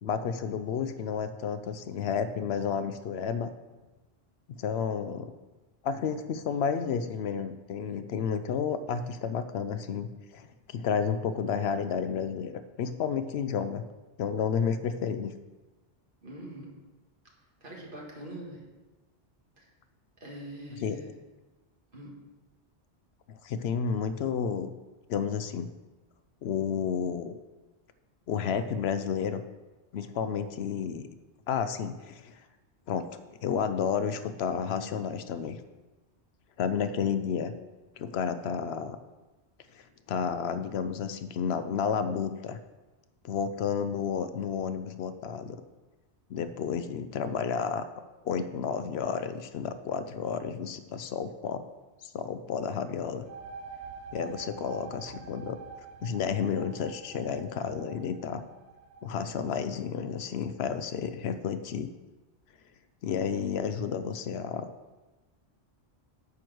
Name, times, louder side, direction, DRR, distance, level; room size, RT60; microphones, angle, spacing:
voice 1, 0.0-3.5 4.5-5.3 5.8-13.8 14.2-15.3 20.7-21.0 23.3-24.7 25.1-25.7 26.4-27.3 28.3-29.4 29.9-31.1 31.5-32.4 32.9-33.1 33.4-35.6 36.6-37.5 38.0-39.0 39.7-39.8 40.1-42.6 43.2-45.6 46.3-47.8 48.2-51.6 52.0-53.2 54.1-55.6 56.0-58.4 59.0-61.9 63.0-64.7, left 7 dB, 70° left, 11 dB, 0.8 m, -31 dB
voice 2, 16.2-16.7 17.6-18.6 19.6-19.7 20.2-21.1 21.9-22.1, right 1 dB, 50° right, -2 dB, 2.0 m, -43 dB
sound 1, 53.1-60.5, right 5 dB, 90° right, 0.9 m, -47 dB
9.7 x 4.6 x 6.2 m, 1.2 s
omnidirectional pair, 1.1 m